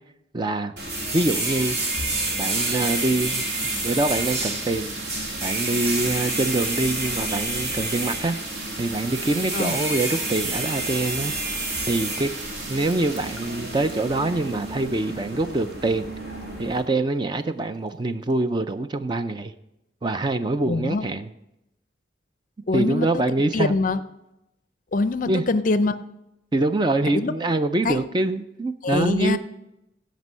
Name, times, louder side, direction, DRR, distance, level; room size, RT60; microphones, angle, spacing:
voice 1, 0.3-0.7 1.1-1.8 2.4-3.4 3.8-4.9 5.4-8.4 8.8-11.3 11.9-12.3 12.7-16.1 16.6-19.5 20.0-21.3 22.7-23.8 25.3-25.4 26.5-29.4, right 2 dB, 25° right, 10 dB, 0.4 m, -24 dB
sound 1, 0.8-16.8, right 2 dB, 65° right, 2.6 m, -29 dB
sound 2, 2.5-15.1 15.9-16.0 16.2-16.6 16.9-17.5 18.0-18.1 18.3-18.4, right 3 dB, 85° right, 1.9 m, -39 dB
voice 2, 20.7-21.1 22.7-23.2 23.5-24.0 24.9-26.0 27.1-27.3 27.8-28.0 28.8-29.4, left 3 dB, 45° left, 13 dB, 0.5 m, -23 dB
15.5 x 5.2 x 5.5 m, 0.88 s
head